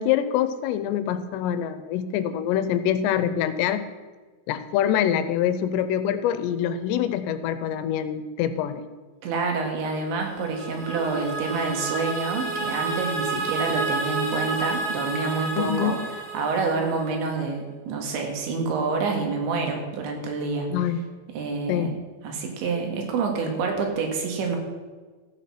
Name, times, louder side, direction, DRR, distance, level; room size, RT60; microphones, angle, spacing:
voice 1, 0.0-3.9 4.5-8.8 13.4-13.5 15.6-16.0 20.7-21.0 21.7-21.9, left 10 dB, 85° left, 11 dB, 2.8 m, -25 dB
voice 2, 9.2-16.0 16.3-20.7 21.4-22.0 22.2-24.6, right 4 dB, 90° right, 2 dB, 4.2 m, -27 dB
sound 1, 10.0-17.2, right 3 dB, 60° right, 4.2 m, -30 dB
15.0 x 7.6 x 5.8 m, 1.4 s
omnidirectional pair, 5.0 m